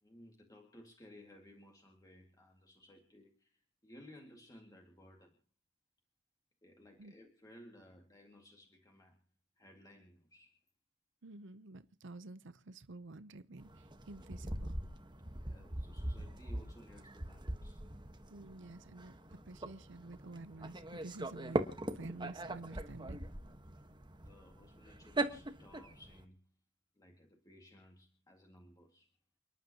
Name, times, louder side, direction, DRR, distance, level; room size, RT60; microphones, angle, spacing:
voice 1, 0.0-5.4 6.6-9.2 9.6-10.6 15.4-18.4 23.7-23.9 24.1-26.4 27.0-29.1, left 1 dB, 20° left, 2.2 m, -59 dB
voice 2, 11.2-14.8 18.3-19.1 19.5-21.6 21.9-23.3, right 2 dB, 65° right, 0.8 m, -50 dB
sound 1, 13.6-26.2, right 1 dB, 25° right, 1.4 m, -41 dB
29.5 x 11.0 x 3.0 m
head